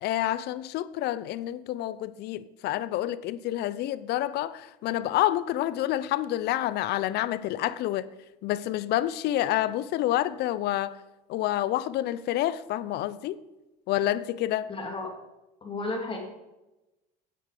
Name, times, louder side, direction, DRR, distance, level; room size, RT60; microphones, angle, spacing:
voice 1, 0.0-8.1 8.4-11.0 11.3-13.4 13.9-14.7, left 13 dB, 55° left, 0.6 m, -28 dB
voice 2, 14.7-15.1 15.6-16.2, left 2 dB, 25° left, 2.7 m, -33 dB
8.7 x 8.4 x 5.1 m
supercardioid pair, 90°, 21 cm